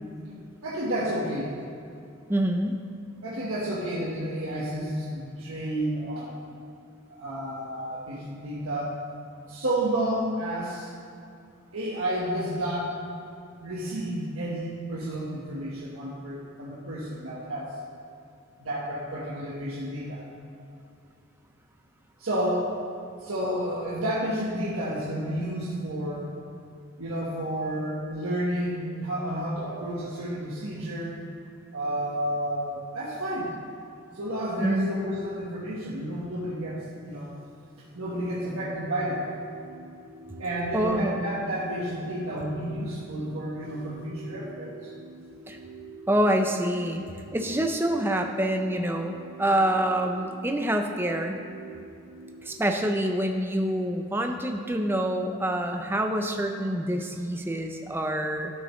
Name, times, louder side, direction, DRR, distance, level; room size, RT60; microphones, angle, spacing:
voice 1, 0.6-1.5 3.2-6.6 7.1-9.0 9.5-10.9 11.7-12.9 13.6-17.7 18.6-20.2 22.2-22.7 23.2-26.3 27.0-31.2 31.7-33.5 34.1-37.3 37.9-39.3 40.4-44.9, right 1 dB, 90° right, -6 dB, 1.3 m, -31 dB
voice 2, 2.3-2.8 34.6-34.9 40.7-41.2 45.5-45.6 46.1-47.1 47.3-51.4 52.4-58.5, right 1 dB, 10° right, 4 dB, 0.5 m, -26 dB
sound 1, 38.1-52.5, right 4 dB, 65° right, 0.9 m, -45 dB
11.5 x 7.1 x 3.2 m, 2.5 s
head